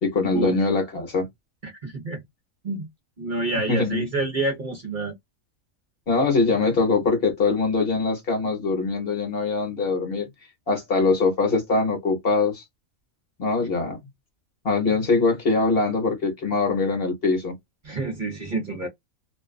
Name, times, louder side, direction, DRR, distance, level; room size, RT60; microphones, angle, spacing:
voice 1, 0.0-1.3 3.5-4.0 6.1-10.3 10.7-12.6 13.4-14.0 14.6-17.5, left 3 dB, 50° left, 1.0 m, -22 dB
voice 2, 1.6-2.2 2.6-2.9 3.2-5.1 17.8-18.9, right 2 dB, 45° right, 0.8 m, -28 dB
2.5 x 2.3 x 2.2 m
omnidirectional pair, 1.4 m